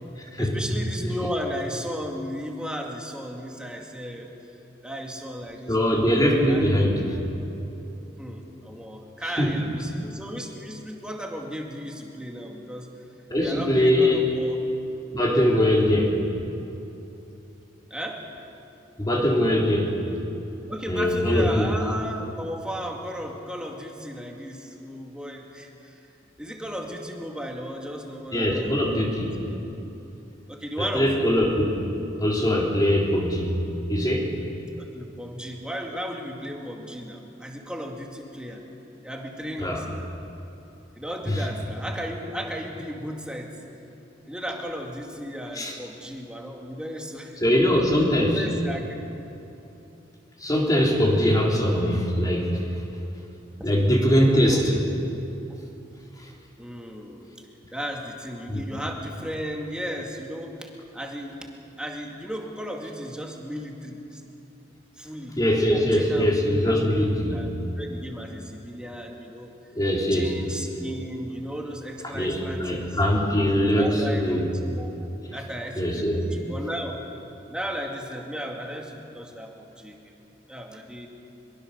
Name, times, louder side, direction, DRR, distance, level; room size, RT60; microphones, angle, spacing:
voice 1, 0.4-4.3 4.8-6.1 6.5-6.7 8.2-12.9 13.4-14.6 15.3-15.5 17.9-18.3 20.7-26.0 26.4-29.6 30.5-31.4 34.7-38.6 39.0-40.0 40.9-43.6 44.3-47.4 48.2-49.1 53.6-53.7 54.4-54.6 55.5-55.6 56.6-57.3 57.7-61.5 61.8-64.2 65.0-67.0 67.3-69.5 70.1-73.0 73.6-77.0 77.5-80.1 80.5-81.1, equal, 5° right, 0 dB, 2.3 m, -35 dB
voice 2, 5.7-7.0 9.4-9.6 13.3-14.2 15.1-16.1 19.0-19.9 20.9-21.6 28.3-29.3 30.8-31.7 32.2-33.5 33.9-34.3 39.6-39.8 41.3-41.4 45.6-45.7 47.4-48.4 50.4-52.5 53.6-54.8 58.5-58.6 65.4-67.5 69.8-70.3 72.1-74.5 75.8-76.2, equal, 20° left, -2 dB, 3.7 m, -22 dB
23.5 x 23.0 x 6.8 m, 2.9 s
head